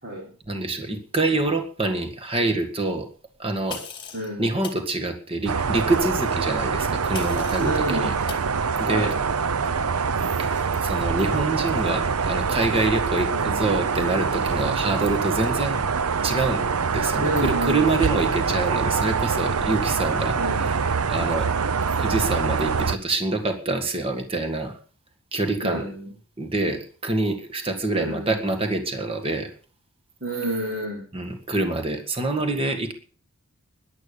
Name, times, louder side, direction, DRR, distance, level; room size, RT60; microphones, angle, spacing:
voice 1, 0.5-3.1 3.4-3.8 4.4-8.1 8.8-9.1 10.4-15.8 16.2-16.6 16.9-20.4 20.7-20.8 21.1-21.5 22.0-24.8 25.3-25.8 26.4-29.5 31.1-32.9, right 2 dB, 25° right, 5 dB, 1.9 m, -26 dB
sound 1, 3.7-4.3 4.6-4.8 7.1-7.8 8.3-8.5, left 5 dB, 20° left, 2.4 m, -37 dB
voice 2, 4.1-4.5 7.6-8.2 8.8-9.2 13.3-13.6 17.2-18.1 20.4-20.7 25.6-26.1 27.9-28.3 30.2-31.1, right 1 dB, 45° right, -3 dB, 4.5 m, -29 dB
sound 2, 5.5-23.0, right 5 dB, 85° right, 0.7 m, -24 dB
14.0 x 11.0 x 6.8 m, 0.42 s
head